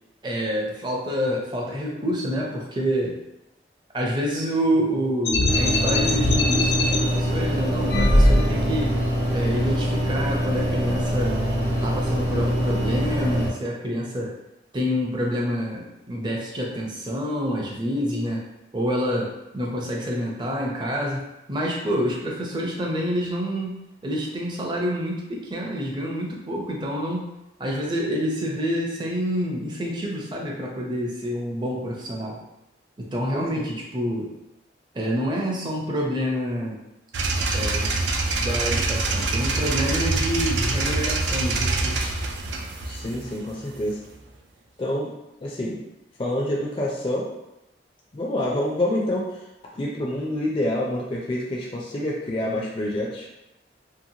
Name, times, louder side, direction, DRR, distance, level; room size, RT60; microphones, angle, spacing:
voice 1, 0.2-3.2 3.9-9.0 9.3-11.4 11.8-14.3 14.7-18.4 18.7-27.3 27.6-32.4 33.0-34.3 34.9-36.8 37.5-37.9 38.3-42.1, equal, 25° right, -2 dB, 0.5 m, -27 dB
sound 1, 5.2-7.0 7.9-8.8, left 1 dB, 70° left, 0.6 m, -20 dB
sound 2, 5.5-13.5, equal, 55° right, 0.9 m, -24 dB
voice 2, 33.3-33.6 42.9-44.0 44.8-45.1 45.4-45.8 46.2-47.2 48.1-49.3 49.7-53.3, left 1 dB, 30° left, -4 dB, 0.4 m, -27 dB
sound 3, 37.1-44.1, right 3 dB, 85° right, 0.4 m, -25 dB
2.8 x 2.5 x 2.7 m, 0.92 s
head